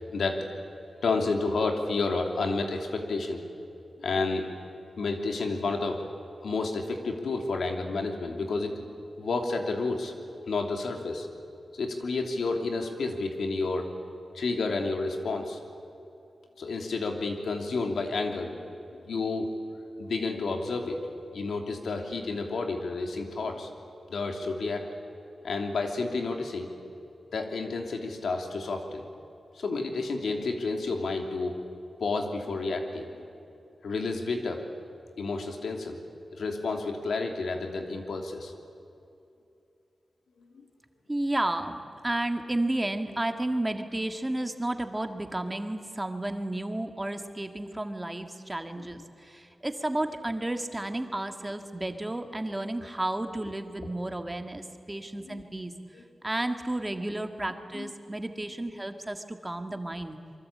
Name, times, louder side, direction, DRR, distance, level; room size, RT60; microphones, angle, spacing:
voice 1, 0.1-0.4 1.0-3.4 4.0-4.5 5.0-6.0 6.4-8.8 9.2-10.1 10.5-11.3 11.7-13.9 14.3-15.6 16.6-18.6 18.9-19.5 20.0-21.0 21.3-23.7 24.1-24.9 25.4-26.7 27.3-29.0 29.5-31.6 32.0-33.1 33.8-34.6 35.2-36.0 36.4-38.5 40.4-40.5 55.2-55.4 55.9-56.0 57.7-57.9, left 3 dB, 90° left, 3 dB, 3.0 m, -30 dB
voice 2, 41.1-55.7 56.2-60.2, right 1 dB, 15° right, 6 dB, 1.8 m, -32 dB
26.5 x 24.0 x 8.6 m, 2.6 s
wide cardioid pair, 105°, 0 cm